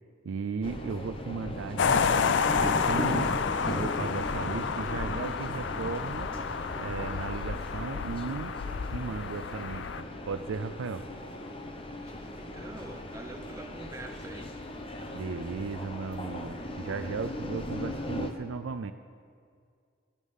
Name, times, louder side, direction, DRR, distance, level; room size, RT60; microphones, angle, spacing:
voice 1, 0.2-3.3 3.7-6.3 6.8-8.6 8.9-11.1 15.1-18.9, right 4 dB, 80° right, 10 dB, 0.4 m, -36 dB
sound 1, 0.6-18.3, left 1 dB, 25° left, 0.7 m, -38 dB
sound 2, 1.8-10.0, left 6 dB, 65° left, 0.4 m, -30 dB
voice 2, 12.0-14.6, right 2 dB, 15° right, 5 dB, 0.7 m, -46 dB
13.0 x 10.0 x 5.5 m, 2.1 s
head